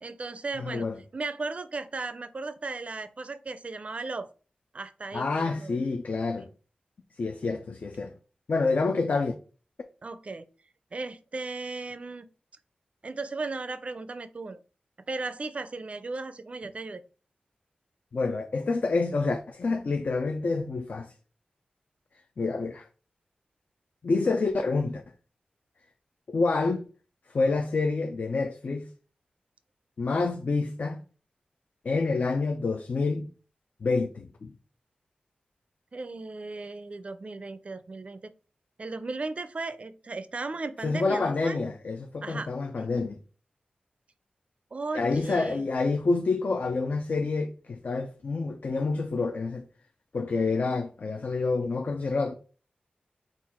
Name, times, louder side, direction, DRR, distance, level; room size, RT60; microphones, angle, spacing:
voice 1, 0.0-0.8 1.1-4.3 4.7-5.8 10.0-10.5 10.9-12.3 13.0-14.6 15.1-17.0 35.9-38.3 38.8-41.6 42.2-42.5 44.7-45.7, right 3 dB, 45° right, 0.4 m, -36 dB
voice 2, 0.6-1.0 5.1-6.5 7.2-8.1 8.5-9.3 18.1-21.1 22.4-22.9 24.0-25.0 26.3-26.8 27.3-28.9 30.0-31.0 31.8-33.3 33.8-34.5 40.8-43.2 44.9-49.7 50.1-52.3, left 3 dB, 60° left, 0.4 m, -28 dB
3.9 x 2.4 x 4.2 m
wide cardioid pair, 80°, 3 cm